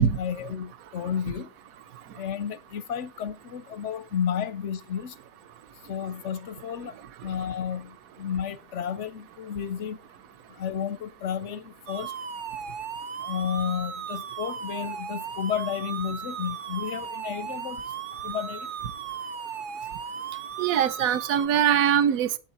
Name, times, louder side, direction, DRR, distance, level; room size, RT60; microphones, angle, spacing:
voice 1, 0.0-1.5 2.1-5.1 5.9-6.9 7.2-10.0 10.6-12.1 13.2-17.8 18.2-18.7, left 8 dB, 60° left, 0.8 m, -32 dB
sound 1, 11.9-21.5, right 7 dB, 80° right, 0.4 m, -36 dB
voice 2, 20.6-22.4, right 8 dB, 60° right, 1.2 m, -22 dB
12.5 x 8.5 x 4.2 m
omnidirectional pair, 1.9 m